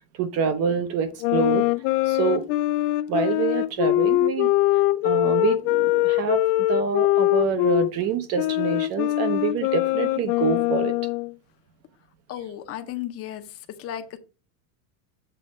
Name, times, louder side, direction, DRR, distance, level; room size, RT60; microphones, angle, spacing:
voice 1, 0.1-1.6 2.0-2.4 3.1-4.5 5.0-10.9, right 7 dB, 35° right, 0.5 m, -26 dB
sound 1, 1.2-7.9 8.4-11.3, left 17 dB, 80° left, 0.5 m, -22 dB
voice 2, 12.3-14.2, left 11 dB, 30° left, 0.7 m, -35 dB
7.7 x 3.0 x 6.2 m
supercardioid pair, 160°, 47 cm